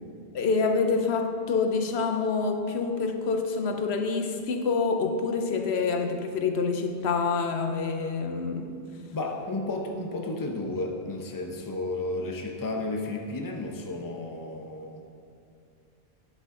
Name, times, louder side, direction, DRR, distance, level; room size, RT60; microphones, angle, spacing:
voice 1, 0.3-8.8, left 4 dB, 80° left, 5 dB, 1.0 m, -27 dB
voice 2, 9.1-15.0, left 2 dB, 20° left, 2 dB, 0.6 m, -32 dB
9.0 x 7.9 x 3.8 m, 2.4 s
omnidirectional pair, 1.1 m